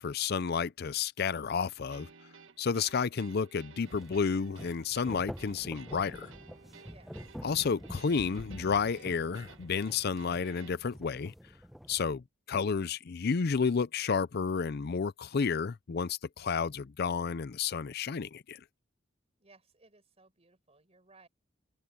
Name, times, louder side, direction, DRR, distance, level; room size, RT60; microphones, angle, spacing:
voice 1, 0.0-2.1 2.6-6.3 7.4-11.3 11.9-18.6, left 5 dB, 50° left, 0.5 m, -31 dB
funk guitar riff, 1.9-10.7, right 5 dB, 70° right, 1.6 m, -55 dB
sound 1, 3.8-12.1, equal, ahead, 0.8 m, -47 dB
voice 2, 6.8-7.3 19.4-21.3, right 3 dB, 30° right, 5.2 m, -61 dB
open air
head